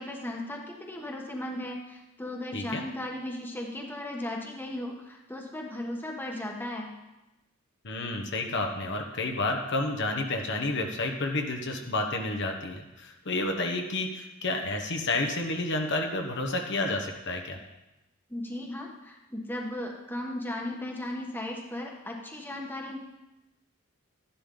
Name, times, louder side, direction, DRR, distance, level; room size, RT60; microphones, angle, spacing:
voice 1, 0.0-6.9 18.3-23.0, left 1 dB, 10° left, 1 dB, 1.3 m, -36 dB
voice 2, 7.8-17.6, left 2 dB, 55° left, 3 dB, 1.1 m, -30 dB
12.0 x 11.0 x 3.8 m, 0.99 s
head